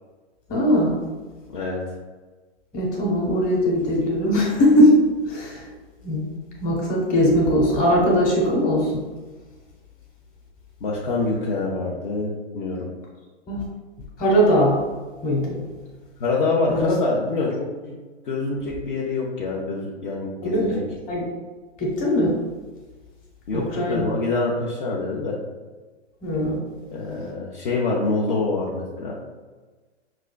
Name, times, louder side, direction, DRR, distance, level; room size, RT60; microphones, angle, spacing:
voice 1, 0.5-0.9 2.7-5.0 5.3-5.6 6.0-6.3 6.6-9.0 13.5-13.6 14.2-14.8 15.2-15.6 16.7-16.9 20.4-20.8 21.1-21.2 21.8-22.3 23.5-24.0 26.2-26.6, equal, 25° left, -3 dB, 1.2 m, -20 dB
voice 2, 10.8-12.8 16.2-17.5 17.8-17.9 18.2-20.8 23.5-25.4 26.9-29.1, left 3 dB, 45° left, -4 dB, 0.7 m, -25 dB
5.6 x 2.5 x 2.2 m, 1.3 s
hypercardioid pair, 130°, 34 cm